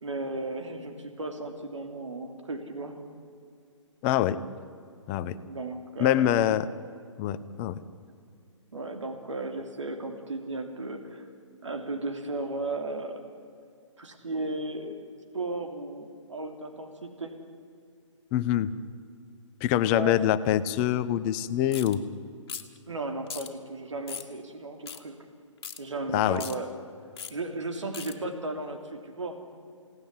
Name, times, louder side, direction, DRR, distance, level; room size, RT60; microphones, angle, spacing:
voice 1, 0.0-3.0 5.5-6.3 8.7-11.3 11.6-13.2 14.0-15.0 15.3-17.3 19.9-20.2 22.9-25.1 25.8-26.7 27.3-29.4, right 2 dB, 70° right, 5 dB, 3.1 m, -35 dB
voice 2, 4.0-4.4 5.1-5.4 6.0-6.7 7.2-7.8 18.3-18.7 19.6-22.0 26.1-26.4, left 12 dB, 25° left, 14 dB, 0.9 m, -25 dB
sound 1, 21.7-22.0 22.5-22.8 23.3-23.5 24.1-24.3 24.9-25.0 25.6-25.8 26.4-26.6 27.2-27.3 27.9-28.1, left 7 dB, 50° left, 2.2 m, -38 dB
28.5 x 18.0 x 9.8 m, 2.3 s
figure-of-eight pair, 130°, 16 cm